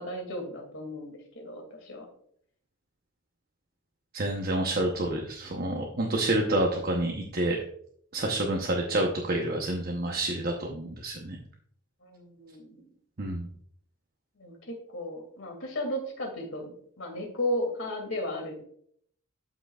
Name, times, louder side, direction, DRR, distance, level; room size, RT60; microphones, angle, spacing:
voice 1, 0.0-2.1 12.0-12.9 14.4-16.7 17.0-18.6, left 1 dB, 70° left, 2 dB, 2.4 m, -35 dB
voice 2, 4.1-7.6 8.1-11.4 13.2-13.5, right 1 dB, 45° right, 1 dB, 0.9 m, -28 dB
12.0 x 5.9 x 2.4 m, 0.64 s
head